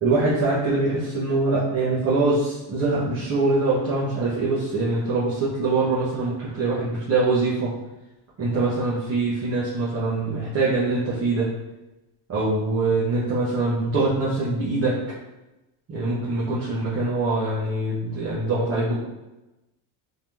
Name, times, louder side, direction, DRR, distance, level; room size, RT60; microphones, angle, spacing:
voice 1, 0.0-7.7 8.4-11.5 12.3-15.0 15.9-19.0, right 3 dB, 30° right, -9 dB, 1.0 m, -23 dB
3.5 x 3.0 x 3.5 m, 0.99 s
cardioid pair, 160°, 49 cm